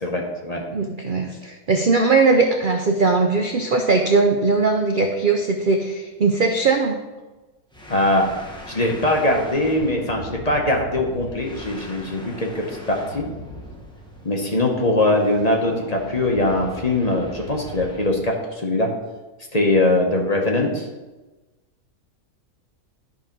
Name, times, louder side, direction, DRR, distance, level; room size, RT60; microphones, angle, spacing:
voice 1, 0.0-0.6 7.9-8.3 8.7-13.2 14.2-18.9 19.5-20.8, left 1 dB, 30° left, 0 dB, 1.0 m, -21 dB
voice 2, 0.7-7.0, right 3 dB, 55° right, 4 dB, 0.5 m, -19 dB
sound 1, 7.7-18.2, equal, 5° left, 0.9 m, -40 dB
11.5 x 4.1 x 5.3 m, 1.2 s
omnidirectional pair, 1.6 m